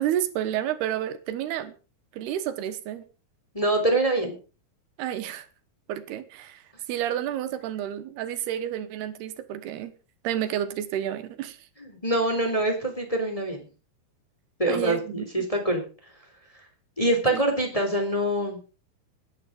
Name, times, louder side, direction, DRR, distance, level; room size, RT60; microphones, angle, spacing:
voice 1, 0.0-1.7 2.1-3.1 5.0-5.5 5.9-9.9 10.2-11.7 14.7-15.5 17.3-17.4, right 11 dB, 90° right, 3.2 m, -30 dB
voice 2, 3.5-4.3 11.8-13.6 14.6-15.8 17.0-18.6, right 1 dB, 10° left, 3.2 m, -25 dB
18.5 x 9.8 x 5.2 m
omnidirectional pair, 4.6 m